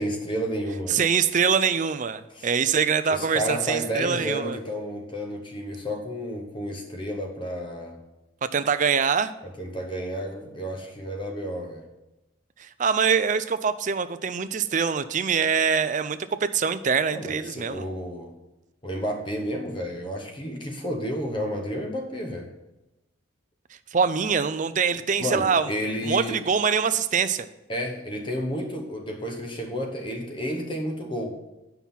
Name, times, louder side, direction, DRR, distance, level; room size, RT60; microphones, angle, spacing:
voice 1, 0.0-1.0 2.3-2.5 3.1-8.0 9.4-11.8 17.1-18.3 18.8-22.5 25.2-26.4 27.7-31.4, equal, 25° left, 2 dB, 1.0 m, -31 dB
voice 2, 0.9-4.6 8.4-9.3 12.6-17.9 23.9-25.7 26.0-27.5, right 6 dB, 40° right, 12 dB, 0.4 m, -24 dB
9.2 x 5.7 x 5.7 m, 1.0 s
head